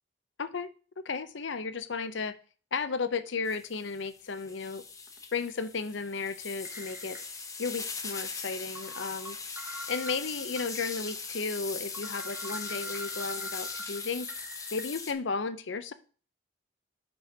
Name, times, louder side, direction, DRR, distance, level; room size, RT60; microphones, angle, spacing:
voice 1, 0.4-0.7 1.0-2.3 2.7-4.8 5.3-7.2 7.6-9.4 9.9-14.3 14.7-15.9, left 4 dB, 65° left, 13 dB, 0.6 m, -34 dB
sound 1, 3.1-3.3 3.7-3.9 5.1-5.2 6.6-7.7 8.1-8.2 8.7-10.6 11.1-11.2 11.6-11.7 11.9-14.8, equal, 10° right, 0.9 m, -44 dB
sound 2, 3.5-15.1, left 4 dB, 15° left, 0.7 m, -40 dB
5.3 x 5.2 x 5.8 m, 0.39 s
head